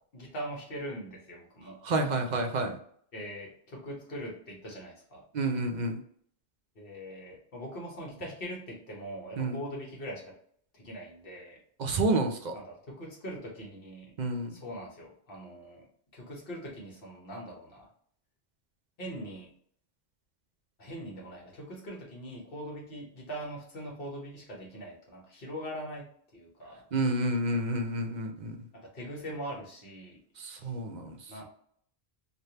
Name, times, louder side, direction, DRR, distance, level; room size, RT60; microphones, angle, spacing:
voice 1, 0.1-1.8 3.1-5.2 6.7-10.3 10.7-11.6 12.5-14.1 14.5-15.9 16.1-17.9 19.0-19.5 20.8-26.8 28.7-30.7 31.3-31.4, equal, 60° left, -1 dB, 1.3 m, -42 dB
voice 2, 1.8-2.8 5.3-6.0 9.4-9.6 11.8-12.5 14.2-14.5 26.9-28.6 30.4-31.3, right 2 dB, 55° right, 4 dB, 0.6 m, -29 dB
3.2 x 2.6 x 2.8 m, 0.62 s
omnidirectional pair, 1.1 m